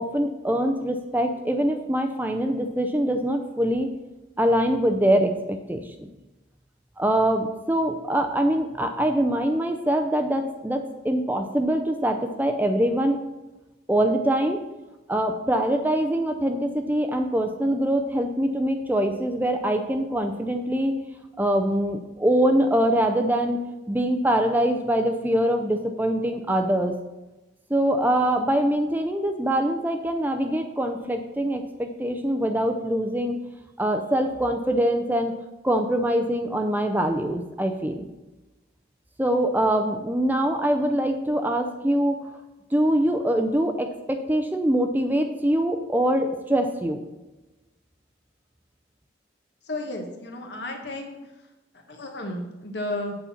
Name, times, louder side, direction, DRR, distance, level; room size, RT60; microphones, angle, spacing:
voice 1, 0.0-3.9 4.4-5.8 7.0-13.2 13.9-14.6 15.1-20.9 21.4-26.9 27.7-33.4 33.8-35.4 35.6-38.0 39.2-42.2 42.7-47.0, right 1 dB, 10° right, 5 dB, 0.5 m, -23 dB
voice 2, 49.7-51.2 51.9-53.1, left 1 dB, 65° left, 3 dB, 1.4 m, -33 dB
8.3 x 4.2 x 7.1 m, 1.1 s
head